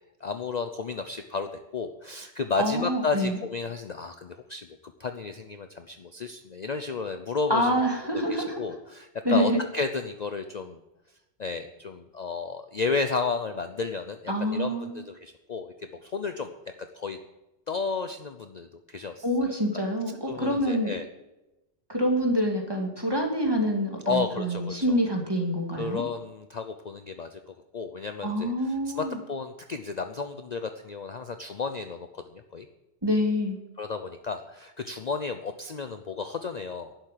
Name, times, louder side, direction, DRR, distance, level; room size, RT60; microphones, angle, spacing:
voice 1, 0.2-4.7 5.0-7.7 8.1-10.8 11.4-16.5 16.9-17.2 17.7-19.5 20.3-21.1 24.1-25.0 25.7-27.4 27.7-32.7 33.8-37.0, left 4 dB, 45° left, 7 dB, 0.7 m, -32 dB
voice 2, 2.6-3.4 7.5-8.6 9.2-9.6 14.3-15.0 19.2-20.9 21.9-26.0 28.2-29.2 33.0-33.6, equal, 20° right, 1 dB, 2.3 m, -26 dB
11.5 x 7.7 x 9.1 m, 1.0 s
omnidirectional pair, 1.2 m